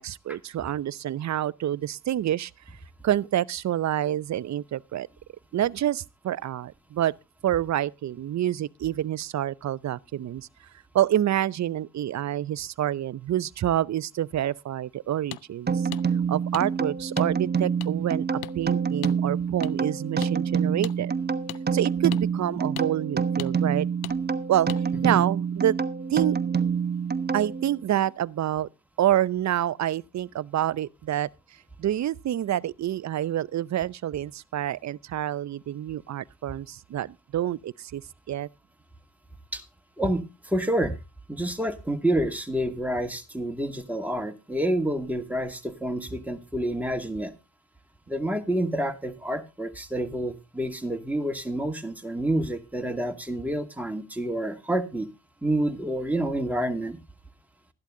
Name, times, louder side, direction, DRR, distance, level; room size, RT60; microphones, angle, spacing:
voice 1, 0.0-2.5 3.0-5.1 5.5-7.1 7.4-10.5 10.9-15.9 16.3-21.1 21.7-23.9 24.5-24.7 25.0-25.7 26.1-26.4 27.3-28.7 29.0-31.3 31.8-38.0 38.3-38.5, right 12 dB, 45° right, 0.7 m, -27 dB
sound 1, 15.3-15.4 15.9-16.0 16.5-16.6 17.2-17.3 17.8-17.9 18.4-18.5 19.0-19.2 19.6-19.7 20.2-20.3 20.8-21.0 21.5-21.6 22.1-22.2 22.8-22.9 23.4-23.5 24.0-24.2 24.7-24.8, left 18 dB, 70° left, 0.6 m, -37 dB
sound 2, 15.7-27.8, right 6 dB, 25° right, 1.1 m, -27 dB
voice 2, 40.0-41.0 41.3-47.3 48.1-55.1 55.4-57.0, right 1 dB, 5° right, 2.2 m, -28 dB
13.0 x 11.5 x 3.8 m
hypercardioid pair, 60°, 39 cm